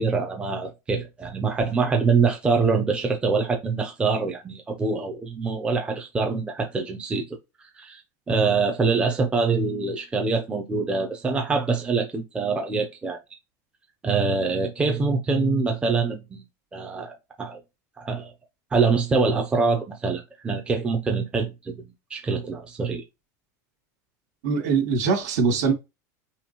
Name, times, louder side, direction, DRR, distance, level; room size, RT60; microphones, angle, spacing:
voice 1, 0.0-7.4 7.8-8.0 8.3-13.2 14.0-16.4 16.7-17.6 18.0-18.3 18.7-21.8 22.1-23.0, right 4 dB, 10° right, 0.7 m, -24 dB
voice 2, 24.4-25.7, right 5 dB, 70° right, 2.7 m, -22 dB
5.7 x 2.4 x 3.1 m
supercardioid pair, 155°, 9 cm